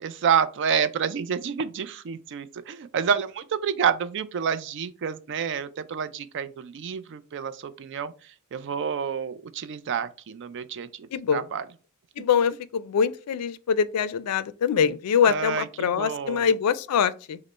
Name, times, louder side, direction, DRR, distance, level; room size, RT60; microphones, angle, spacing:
voice 1, 0.0-8.1 8.5-11.7 15.2-16.5, right 7 dB, 55° right, 0.4 m, -28 dB
voice 2, 11.1-11.4 12.2-17.4, left 7 dB, 85° left, 0.4 m, -24 dB
5.1 x 2.0 x 4.3 m
head